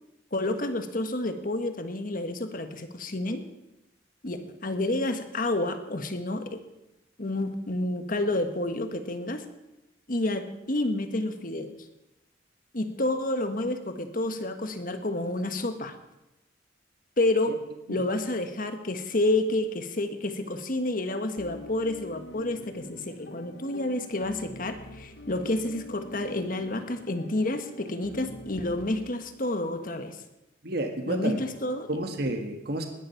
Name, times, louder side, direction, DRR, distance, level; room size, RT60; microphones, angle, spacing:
voice 1, 0.3-3.4 4.2-6.6 7.2-9.4 10.1-11.7 12.7-15.9 17.2-17.6 17.9-30.2 31.1-31.9, left 2 dB, 45° left, 7 dB, 1.4 m, -29 dB
sound 1, 21.4-29.0, left 1 dB, 65° left, 1.3 m, -45 dB
voice 2, 30.6-31.4 31.9-32.9, right 1 dB, 60° right, 4 dB, 1.7 m, -30 dB
20.0 x 9.9 x 5.8 m, 0.95 s
head